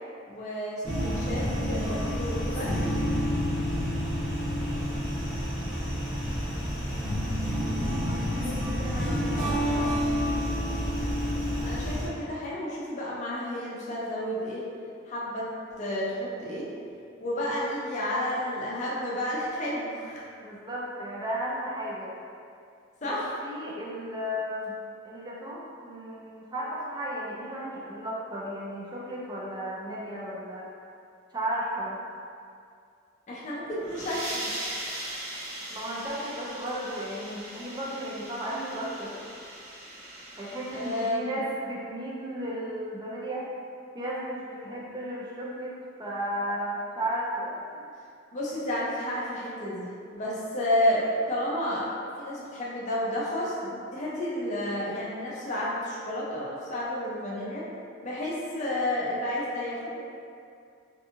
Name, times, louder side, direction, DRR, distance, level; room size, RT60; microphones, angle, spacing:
voice 1, 0.3-2.8 11.6-14.7 15.1-15.5 15.8-16.7 17.2-20.3 23.0-23.3 33.3-34.5 40.7-41.3 44.6-44.8 48.3-49.9 50.1-57.7 58.0-60.0, left 1 dB, 35° left, -6 dB, 0.5 m, -31 dB
sound 1, 0.8-12.1, equal, ahead, 0.8 m, -29 dB
voice 2, 8.0-9.9 20.4-22.1 23.0-24.7 25.0-30.7 31.3-32.0 35.7-39.2 40.4-43.4 43.9-45.7 46.0-47.8, equal, 20° right, -5 dB, 0.3 m, -34 dB
sound 2, 33.6-41.1, right 1 dB, 85° right, 0.8 m, -39 dB
2.6 x 2.6 x 2.5 m, 2.4 s
head